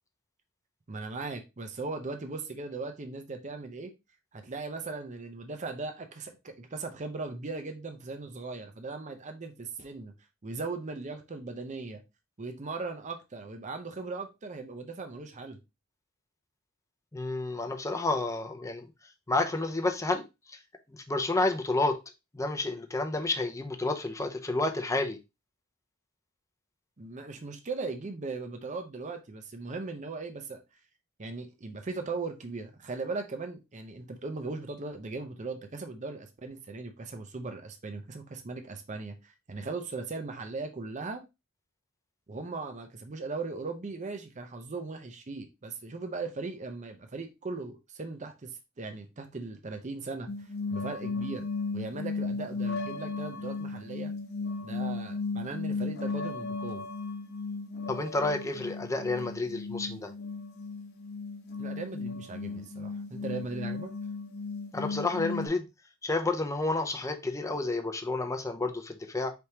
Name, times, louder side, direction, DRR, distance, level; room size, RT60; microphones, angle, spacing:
voice 1, 0.9-3.9 4.3-10.1 10.4-12.0 12.4-15.6 27.0-30.6 31.2-41.2 42.3-48.5 48.8-50.3 50.7-51.5 51.7-54.1 54.6-56.8 61.6-63.9, right 3 dB, 35° right, 0.6 m, -38 dB
voice 2, 17.1-18.9 19.3-20.6 20.9-22.0 22.3-25.2 57.9-60.1 64.7-65.7 66.0-69.3, left 2 dB, 15° left, 0.5 m, -30 dB
sound 1, 50.3-65.5, left 3 dB, 55° left, 0.9 m, -35 dB
4.5 x 3.5 x 2.8 m
head